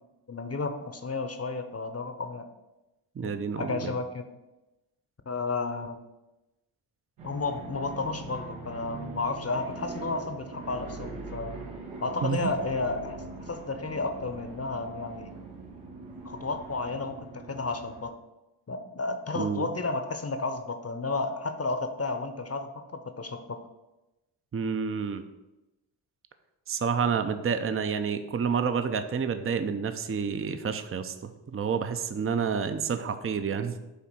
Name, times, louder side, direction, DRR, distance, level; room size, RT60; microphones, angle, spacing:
voice 1, 0.3-2.4 3.2-4.3 5.3-6.0 7.2-11.6 12.0-15.3 16.2-18.2 18.7-23.6, left 3 dB, 30° left, 8 dB, 0.8 m, -32 dB
voice 2, 3.2-3.9 12.2-12.5 19.3-19.7 24.5-25.2 26.7-33.8, right 6 dB, 25° right, 9 dB, 0.6 m, -29 dB
sound 1, 7.2-18.0, right 3 dB, 85° right, 1.6 m, -42 dB
8.1 x 2.7 x 6.1 m, 1.0 s
cardioid pair, 60°, 49 cm